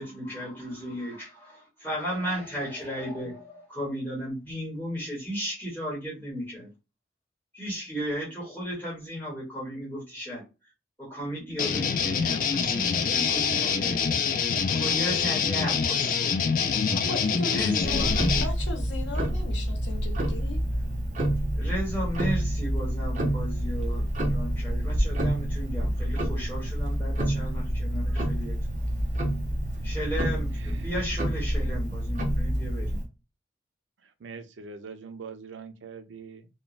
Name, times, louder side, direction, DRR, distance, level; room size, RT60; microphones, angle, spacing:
voice 1, 0.0-6.7 7.5-10.4 11.0-14.2 14.7-16.3 17.5-18.2 21.5-28.6 29.8-33.0, equal, 10° left, 1.1 m, -35 dB
sound 1, 11.6-18.4, left 6 dB, 45° left, 0.3 m, -25 dB
voice 2, 16.9-18.1 18.4-20.6, left 2 dB, 85° left, 0.7 m, -36 dB
Tick-tock, 17.8-33.1, right 1 dB, 45° right, 0.7 m, -28 dB
voice 3, 34.2-36.5, right 5 dB, 90° right, 0.5 m, -43 dB
3.0 x 2.2 x 2.3 m
head